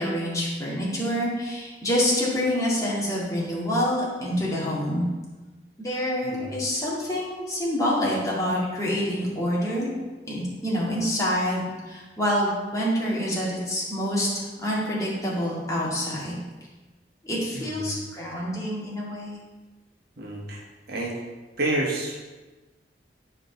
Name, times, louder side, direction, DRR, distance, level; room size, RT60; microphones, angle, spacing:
voice 1, 0.0-5.0 5.8-9.9 10.3-16.4 17.2-19.4, equal, 20° left, -6 dB, 2.1 m, -27 dB
voice 2, 17.5-18.0 20.2-20.6 20.9-21.1 21.6-22.2, right 1 dB, 60° right, -2 dB, 1.4 m, -29 dB
10.0 x 5.1 x 4.0 m, 1.2 s
head